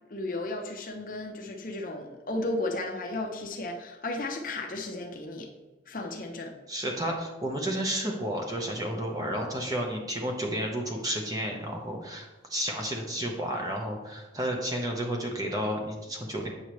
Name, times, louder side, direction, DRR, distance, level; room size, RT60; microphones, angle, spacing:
voice 1, 0.1-5.5 5.9-6.5, left 2 dB, 50° left, 3 dB, 0.7 m, -34 dB
voice 2, 6.7-16.5, equal, 20° right, 0 dB, 0.9 m, -31 dB
8.5 x 5.5 x 3.1 m, 1.1 s
head